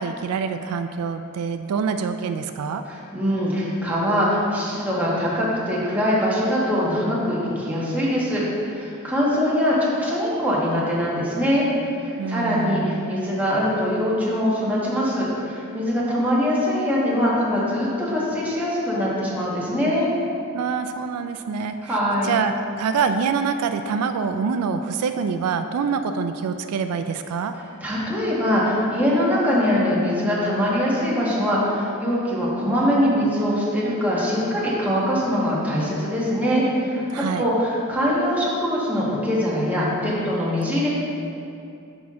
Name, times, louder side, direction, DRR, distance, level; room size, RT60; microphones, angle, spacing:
voice 1, 0.0-2.8 12.2-13.2 20.5-22.0 22.2-27.6 37.1-37.5, right 5 dB, 85° right, 8 dB, 0.3 m, -25 dB
voice 2, 2.9-11.6 12.0-20.1 21.8-22.3 27.8-37.0 37.4-40.9, equal, 5° right, -7 dB, 1.3 m, -22 dB
6.1 x 5.7 x 3.7 m, 2.6 s
head